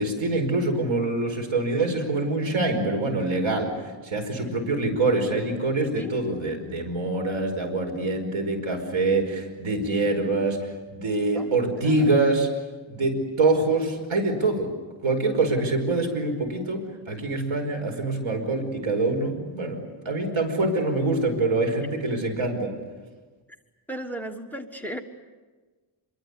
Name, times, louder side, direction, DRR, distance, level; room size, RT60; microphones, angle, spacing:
voice 1, 0.0-3.7 4.0-12.5 12.9-14.7 15.0-19.8 20.0-22.7, right 2 dB, 85° right, 5 dB, 5.2 m, -25 dB
voice 2, 23.9-25.0, equal, 5° left, 6 dB, 1.5 m, -35 dB
26.0 x 23.0 x 8.4 m, 1.3 s
wide cardioid pair, 160°, 47 cm